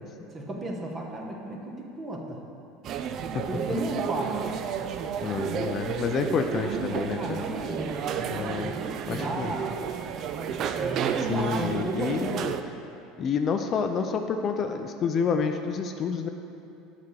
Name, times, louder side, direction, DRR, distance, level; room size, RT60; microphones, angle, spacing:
voice 1, 0.3-2.4 3.5-4.4 7.1-8.0 8.4-9.7 10.7-12.2, right 2 dB, 25° right, 0 dB, 1.1 m, -34 dB
sound 1, 2.8-12.6, right 7 dB, 50° right, 0.3 m, -31 dB
voice 2, 5.2-7.4 8.2-8.7 9.1-9.5 11.2-12.5 13.2-16.3, left 6 dB, 40° left, 6 dB, 0.4 m, -29 dB
6.6 x 4.2 x 6.3 m, 2.8 s
supercardioid pair, 115°, 0 cm